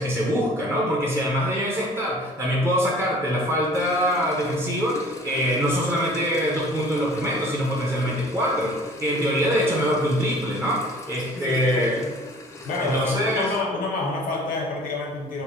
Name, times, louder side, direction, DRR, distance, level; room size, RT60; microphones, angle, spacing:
voice 1, 0.0-12.1 12.8-13.5, equal, 20° right, -4 dB, 0.7 m, -24 dB
sound 1, 3.7-13.6, left 2 dB, 20° left, 0.4 m, -40 dB
voice 2, 11.3-12.1 12.6-15.4, left 3 dB, 90° left, -1 dB, 1.0 m, -28 dB
5.7 x 2.1 x 3.5 m, 1.3 s
wide cardioid pair, 180°, 14 cm